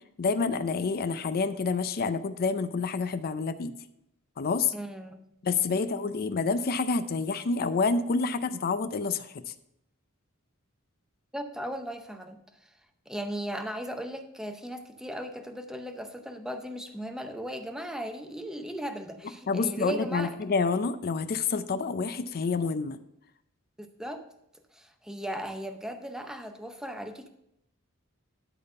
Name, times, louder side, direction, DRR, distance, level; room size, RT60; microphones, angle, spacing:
voice 1, 0.2-3.7 4.4-4.7 5.4-9.3 19.5-23.0, left 4 dB, 45° left, 12 dB, 0.5 m, -28 dB
voice 2, 4.7-5.2 5.8-6.1 11.3-12.4 13.1-20.4 23.8-24.2 24.7-27.3, equal, 5° right, 6 dB, 0.7 m, -37 dB
12.0 x 4.1 x 5.3 m, 0.80 s
head